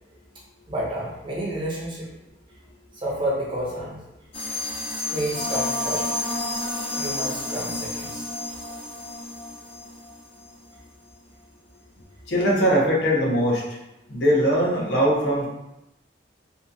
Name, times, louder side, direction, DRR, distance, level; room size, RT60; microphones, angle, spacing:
voice 1, 0.7-2.1 2.9-4.0 4.9-6.1 7.0-8.2, right 1 dB, 25° right, -5 dB, 0.6 m, -30 dB
sound 1, 4.3-10.6, left 2 dB, 30° left, 0.4 m, -30 dB
voice 2, 12.3-13.6 14.1-15.5, equal, 70° left, -4 dB, 0.8 m, -21 dB
2.8 x 2.3 x 2.6 m, 0.89 s
head